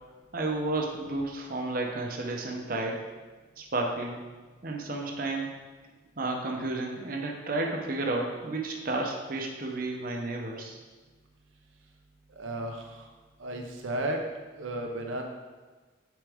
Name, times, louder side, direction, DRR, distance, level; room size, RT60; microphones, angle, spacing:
voice 1, 0.3-3.0 3.6-4.2 4.6-5.5 6.2-10.8, right 2 dB, 45° right, 0 dB, 0.8 m, -32 dB
voice 2, 12.4-13.0 13.4-14.2 14.6-15.2, right 1 dB, 80° right, 2 dB, 0.8 m, -33 dB
9.1 x 4.8 x 3.5 m, 1.3 s
head